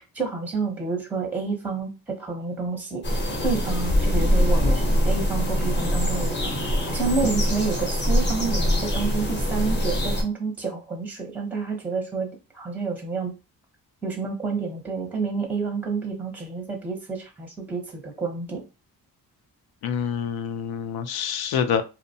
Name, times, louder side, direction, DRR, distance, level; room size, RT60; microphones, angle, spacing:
voice 1, 0.1-3.0 3.4-6.5 6.8-12.3 12.5-13.3 14.0-18.6, right 4 dB, 5° right, 1 dB, 0.6 m, -29 dB
sound 1, 3.0-10.2, equal, 30° left, 0.7 m, -23 dB
voice 2, 19.8-21.8, left 7 dB, 70° left, 9 dB, 0.5 m, -26 dB
2.7 x 2.1 x 2.7 m, 0.29 s
cardioid pair, 130°, 39 cm